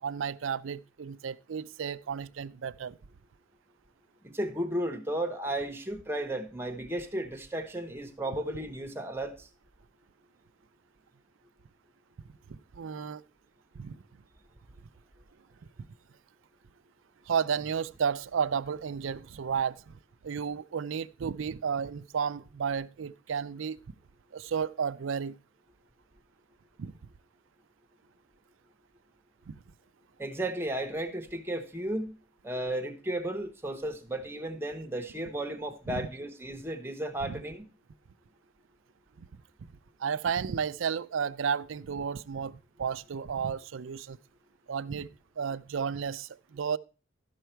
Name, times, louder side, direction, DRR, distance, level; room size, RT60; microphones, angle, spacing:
voice 1, 0.0-3.0 12.5-13.2 13.7-14.0 17.3-19.9 20.2-23.8 24.3-25.4 26.8-26.9 29.5-29.6 35.9-36.1 37.2-37.4 39.2-39.3 40.0-44.2 44.7-45.1 45.4-46.8, right 7 dB, 70° right, 0.4 m, -32 dB
voice 2, 4.2-9.5 30.2-32.1 32.4-37.6, right 1 dB, 10° right, 1.1 m, -34 dB
12.5 x 5.6 x 4.5 m
head